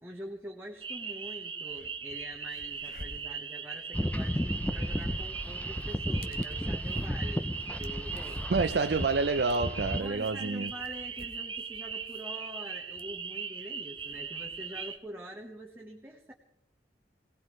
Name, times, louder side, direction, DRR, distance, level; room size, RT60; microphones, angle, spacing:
voice 1, 0.0-7.5 7.8-8.5 10.0-16.3, right 1 dB, 10° right, 1.2 m, -45 dB
sound 1, 0.8-15.0, right 6 dB, 30° right, 0.9 m, -39 dB
sound 2, 1.2-1.3 1.6-15.0, left 2 dB, 55° left, 1.2 m, -55 dB
sound 3, 3.9-10.0, left 1 dB, 10° left, 0.6 m, -34 dB
voice 2, 8.5-10.7, right 4 dB, 60° right, 0.5 m, -28 dB
21.5 x 18.0 x 3.2 m
head